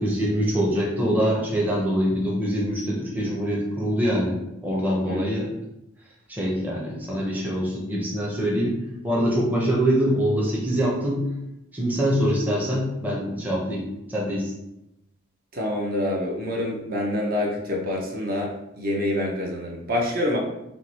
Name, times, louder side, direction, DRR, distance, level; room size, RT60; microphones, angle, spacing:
voice 1, 0.0-4.4 4.6-5.5 6.3-8.8 9.0-11.2 11.7-13.8 14.1-14.5, equal, 10° right, -4 dB, 0.7 m, -24 dB
voice 2, 15.5-20.4, left 1 dB, 45° right, -1 dB, 0.8 m, -26 dB
4.6 x 2.2 x 4.1 m, 0.86 s
head